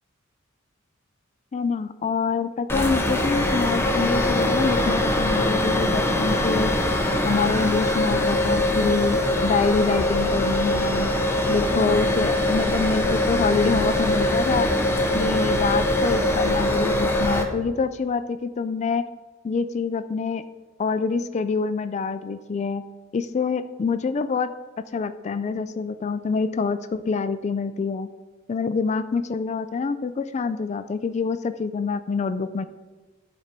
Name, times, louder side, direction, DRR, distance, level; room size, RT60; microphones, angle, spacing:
voice 1, 1.5-6.7 7.2-11.1 11.5-14.7 15.1-19.0 19.4-20.4 20.8-22.8 23.1-24.5 24.9-28.1 28.5-32.6, left 5 dB, 35° left, 12 dB, 0.3 m, -26 dB
sound 1, 2.7-17.4, left 1 dB, 10° left, 0.8 m, -22 dB
11.5 x 4.3 x 5.2 m, 1.2 s
head